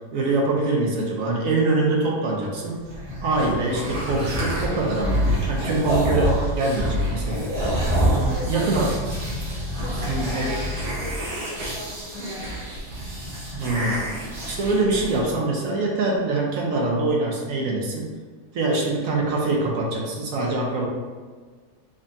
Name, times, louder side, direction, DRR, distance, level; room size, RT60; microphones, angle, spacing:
voice 1, 0.1-2.8 3.2-7.5 8.5-8.9 10.1-10.6 13.5-14.1 14.5-18.1 18.5-20.9, right 2 dB, 65° right, -2 dB, 1.0 m, -24 dB
sound 1, 2.8-15.2, equal, 85° right, 1.7 m, -27 dB
voice 2, 7.9-8.9 9.7-12.7, left 1 dB, 70° left, -4 dB, 0.7 m, -37 dB
5.0 x 2.3 x 2.7 m, 1.5 s
omnidirectional pair, 1.6 m